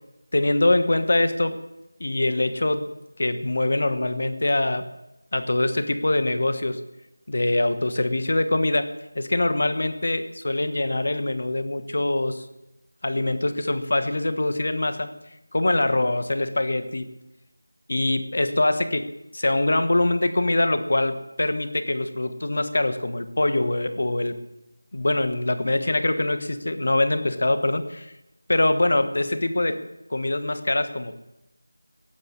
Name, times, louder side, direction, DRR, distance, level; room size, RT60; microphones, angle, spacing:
voice 1, 0.3-1.6 2.0-2.9 3.2-4.9 5.3-6.8 7.3-12.4 13.0-15.1 15.5-17.1 17.9-24.4 24.9-28.1 28.5-29.8 30.1-31.2, left 2 dB, 40° left, 11 dB, 1.3 m, -23 dB
16.0 x 12.0 x 7.4 m, 0.95 s
figure-of-eight pair, 180°, 0 cm